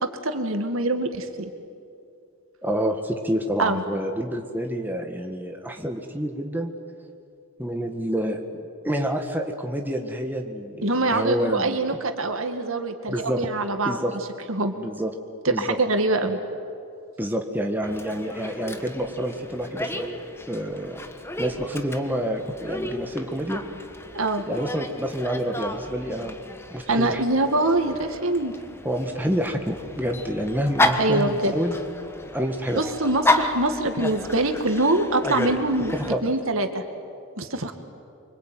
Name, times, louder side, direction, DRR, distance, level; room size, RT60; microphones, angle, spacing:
voice 1, 0.0-1.5 3.6-3.8 10.8-14.0 14.5-14.7 15.5-16.4 24.1-24.4 26.9-28.5 31.0-31.5 32.8-36.8 37.4-37.7, right 2 dB, 65° right, 6 dB, 2.1 m, -24 dB
voice 2, 2.6-6.7 7.6-11.8 13.1-13.4 13.9-14.1 14.7-15.1 15.5-15.8 17.2-20.2 20.5-21.0 21.4-23.6 24.5-26.4 26.7-27.2 28.8-31.8 32.3-32.8 35.9-36.2, equal, 10° right, 3 dB, 1.8 m, -28 dB
Dog, 17.8-36.1, left 1 dB, 10° left, 1.4 m, -32 dB
25.0 x 25.0 x 9.3 m, 2.5 s
head